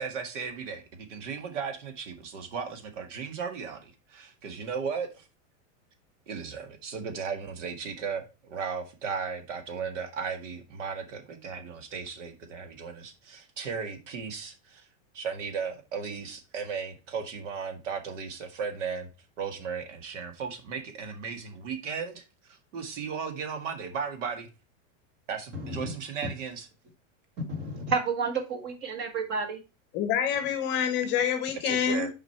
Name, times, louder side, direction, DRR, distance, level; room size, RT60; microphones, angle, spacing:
voice 1, 0.0-5.3 6.3-14.9 15.1-19.1 19.4-24.5 25.3-26.7 31.6-32.1, right 6 dB, 70° right, 1.8 m, -36 dB
voice 2, 25.5-25.9 27.5-29.6, right 4 dB, 25° right, 1.5 m, -31 dB
voice 3, 29.9-32.1, left 8 dB, 30° left, 0.9 m, -27 dB
6.2 x 5.0 x 4.4 m
supercardioid pair, 165°, 38 cm